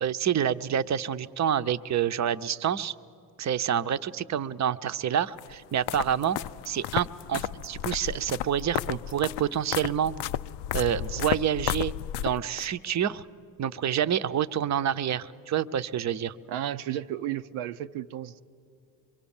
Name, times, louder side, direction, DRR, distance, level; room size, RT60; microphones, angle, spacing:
voice 1, 0.0-2.9 3.4-6.4 6.7-10.2 10.7-13.2 13.6-16.3, right 9 dB, 35° right, 11 dB, 0.7 m, -28 dB
sound 1, 5.4-12.7, left 13 dB, 60° left, 0.5 m, -33 dB
voice 2, 16.5-18.4, right 11 dB, 80° right, 8 dB, 0.6 m, -33 dB
24.0 x 23.5 x 7.2 m, 2.5 s
supercardioid pair, 55°, 46 cm